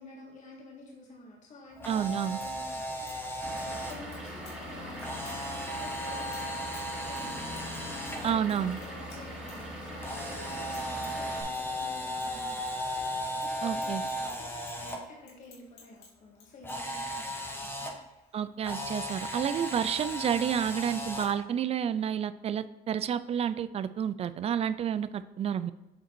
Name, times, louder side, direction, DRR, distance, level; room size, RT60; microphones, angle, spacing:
voice 1, 0.0-5.3 5.7-18.4 19.5-19.7, left 2 dB, 45° left, -2 dB, 1.8 m, -51 dB
Camera, 1.7-3.9 5.0-8.3 10.0-15.0 16.6-17.9 18.6-21.3, equal, 10° left, 1.3 m, -36 dB
voice 2, 1.9-2.4 8.2-8.8 13.6-14.0 18.3-25.7, right 8 dB, 35° right, 14 dB, 0.4 m, -30 dB
sound 1, 2.2-2.5 2.9-3.6 3.9-4.6 5.0-5.4 5.8-10.2 10.5-11.2 11.5-13.1 13.3-16.1 16.3-16.7, left 5 dB, 90° left, 2.0 m, -54 dB
Vehicle / Engine, 3.4-11.4, equal, 5° right, 2.4 m, -41 dB
7.7 x 3.9 x 4.5 m, 0.98 s
cardioid pair, 110°, 17 cm